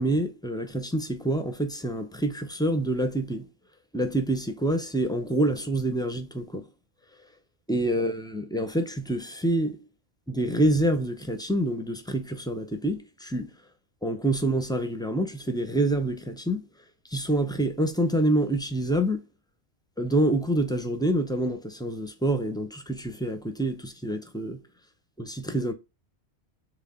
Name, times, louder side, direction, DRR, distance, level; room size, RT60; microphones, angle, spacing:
voice 1, 0.0-3.5 3.9-6.6 7.7-9.8 10.3-13.5 14.0-16.6 17.1-19.2 20.0-24.6 25.2-25.7, right 1 dB, 5° left, 0.4 m, -27 dB
4.1 x 3.6 x 3.5 m
omnidirectional pair, 1.1 m